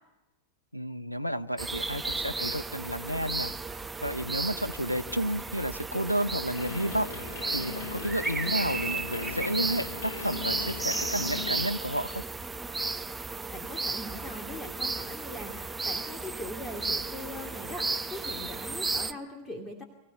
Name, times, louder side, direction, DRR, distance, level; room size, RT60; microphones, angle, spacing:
voice 1, 0.7-3.5 4.0-7.1 7.5-12.2, equal, 90° left, 13 dB, 0.7 m, -31 dB
sound 1, 1.6-19.1, right 3 dB, 10° right, 0.7 m, -34 dB
sound 2, 6.5-11.7, left 5 dB, 60° left, 1.7 m, -39 dB
voice 2, 13.5-19.8, left 1 dB, 10° left, 2 dB, 2.7 m, -41 dB
24.5 x 16.0 x 8.0 m, 1.0 s
figure-of-eight pair, 90°, 0 cm